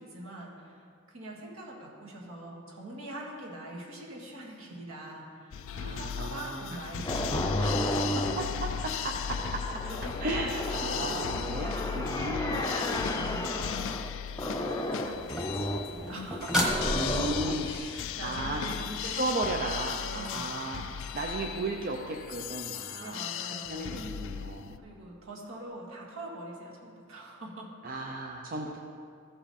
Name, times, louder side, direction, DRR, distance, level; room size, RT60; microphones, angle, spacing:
voice 1, 0.0-8.0 8.9-9.0 9.8-12.1 12.7-13.7 15.0-17.0 17.6-19.7 20.0-20.6 23.0-24.0 24.8-27.7, right 1 dB, 65° right, -3 dB, 1.9 m, -43 dB
sound 1, 5.5-24.8, left 8 dB, 60° left, 0.3 m, -37 dB
voice 2, 5.7-6.8 8.1-9.6 10.2-12.7 16.9-17.7 18.0-23.3 23.7-24.7 27.8-28.8, right 2 dB, 40° right, 1 dB, 0.6 m, -35 dB
sound 2, 7.1-14.1 14.4-15.9 16.7-17.8, left 1 dB, 15° left, 0.6 m, -33 dB
sound 3, 14.7-17.8 21.3-21.4, equal, 5° right, 1.2 m, -33 dB
14.5 x 5.7 x 4.2 m, 2.3 s
head